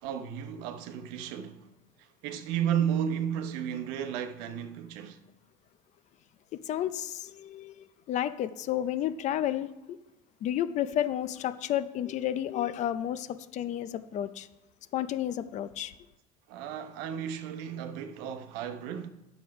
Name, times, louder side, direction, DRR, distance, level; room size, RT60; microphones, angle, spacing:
voice 1, 0.0-1.7 2.2-5.2 16.5-19.1, right 9 dB, 70° right, 0.9 m, -33 dB
voice 2, 6.6-9.7 10.4-13.3 13.5-14.5 14.9-15.9, left 11 dB, 40° left, 0.5 m, -31 dB
9.7 x 7.1 x 4.8 m
cardioid pair, 150°, 19 cm